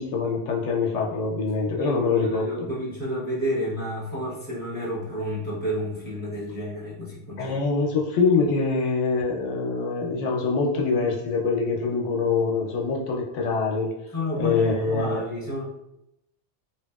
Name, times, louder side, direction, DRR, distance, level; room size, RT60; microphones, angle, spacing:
voice 1, 0.0-2.7 7.4-13.9 14.3-15.3, left 4 dB, 80° left, -1 dB, 0.9 m, -24 dB
voice 2, 1.8-7.5 14.1-15.6, equal, 10° left, -8 dB, 0.8 m, -30 dB
3.0 x 2.6 x 2.3 m, 0.86 s
omnidirectional pair, 1.2 m